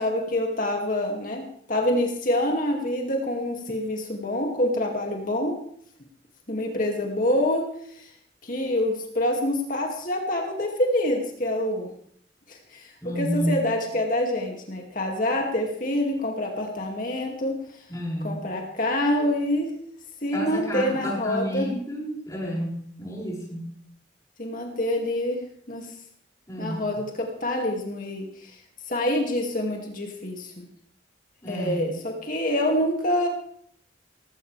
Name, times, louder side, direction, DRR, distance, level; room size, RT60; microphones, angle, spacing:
voice 1, 0.0-5.6 6.5-7.7 7.9-8.1 8.4-11.9 12.5-17.6 18.2-19.7 20.2-21.7 24.4-25.4 25.7-25.9 26.6-28.6 28.9-30.7 31.5-33.3, left 1 dB, 45° left, 1 dB, 2.5 m, -26 dB
voice 2, 13.0-13.7 17.9-18.4 20.3-23.8 26.5-26.9 31.4-31.9, equal, 20° left, -3 dB, 6.2 m, -30 dB
18.5 x 16.5 x 3.5 m, 0.63 s
head